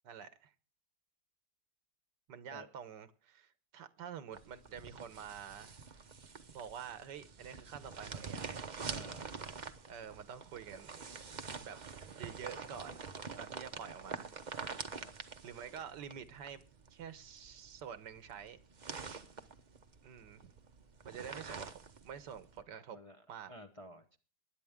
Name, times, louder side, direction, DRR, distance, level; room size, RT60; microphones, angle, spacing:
voice 1, 0.0-0.5 2.3-5.8 6.5-8.6 9.9-11.0 11.6-11.8 12.0-13.0 13.3-14.4 15.4-16.6 16.9-18.6 20.0-20.5 21.0-23.0 23.3-23.5, right 8 dB, 80° right, 1.6 m, -48 dB
sound 1, 4.3-22.6, right 5 dB, 35° right, 0.7 m, -47 dB
voice 2, 8.8-9.3 14.9-15.2 22.7-24.2, equal, 25° left, 0.8 m, -53 dB
21.0 x 10.0 x 3.6 m
omnidirectional pair, 1.8 m